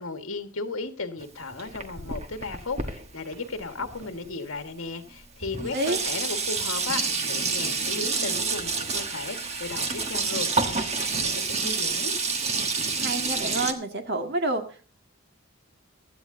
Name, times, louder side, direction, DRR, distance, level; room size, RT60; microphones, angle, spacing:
voice 1, 0.0-12.1, left 3 dB, 70° left, 1.7 m, -35 dB
Sink (filling or washing), 1.2-4.3 5.1-5.2 5.4-13.7, right 4 dB, 30° right, 1.3 m, -28 dB
voice 2, 13.0-14.6, right 2 dB, 50° right, 2.1 m, -28 dB
16.5 x 13.0 x 2.7 m
head